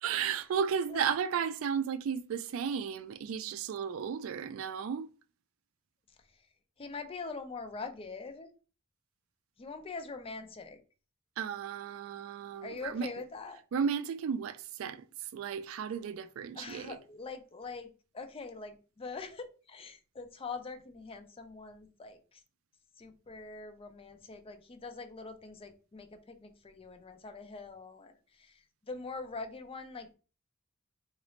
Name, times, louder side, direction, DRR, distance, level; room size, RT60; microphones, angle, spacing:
voice 1, 0.0-5.1 11.4-13.1 13.7-15.0 15.3-17.0, right 7 dB, 70° right, 0.3 m, -34 dB
voice 2, 6.8-8.5 9.6-10.8 12.6-13.6 16.5-22.4 23.0-30.1, left 4 dB, 25° left, 0.5 m, -43 dB
3.9 x 2.5 x 3.1 m
head